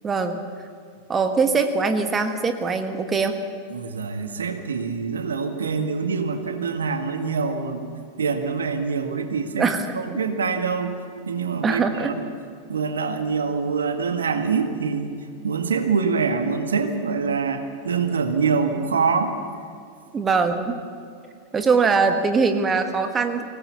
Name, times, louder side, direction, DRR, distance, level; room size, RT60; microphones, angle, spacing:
voice 1, 0.0-0.4 1.1-3.4 9.6-9.8 11.6-12.1 20.1-20.8 21.5-23.4, right 4 dB, 20° right, 7 dB, 1.5 m, -22 dB
voice 2, 3.7-7.9 8.2-9.7 10.0-12.2 12.7-15.2 15.4-19.4, right 5 dB, 70° right, 7 dB, 1.8 m, -25 dB
24.0 x 18.5 x 7.1 m, 2.3 s
figure-of-eight pair, 90°, 0 cm